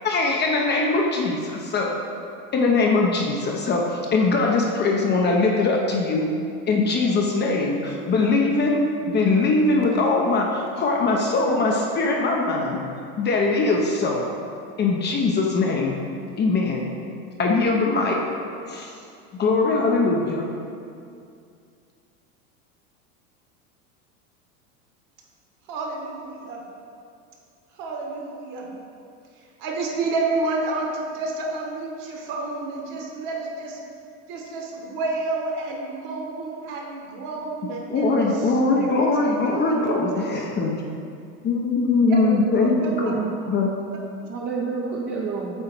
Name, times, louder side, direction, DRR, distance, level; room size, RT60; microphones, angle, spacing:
voice 1, 0.0-1.9 2.5-6.3 6.7-12.8 13.2-14.2 14.8-16.0 16.4-16.8 17.4-18.2 18.7-18.9 19.4-20.4 37.9-40.7 41.4-43.7, left 3 dB, 25° left, 0 dB, 0.6 m, -21 dB
voice 2, 25.7-26.6 27.8-28.7 29.6-33.8 34.3-40.1 42.1-42.2 42.6-43.0, right 3 dB, 50° right, 0 dB, 1.3 m, -30 dB
voice 3, 42.1-43.3 44.3-45.6, right 5 dB, 25° right, -3 dB, 0.5 m, -29 dB
7.7 x 2.8 x 4.5 m, 2.4 s
hypercardioid pair, 100°, 43 cm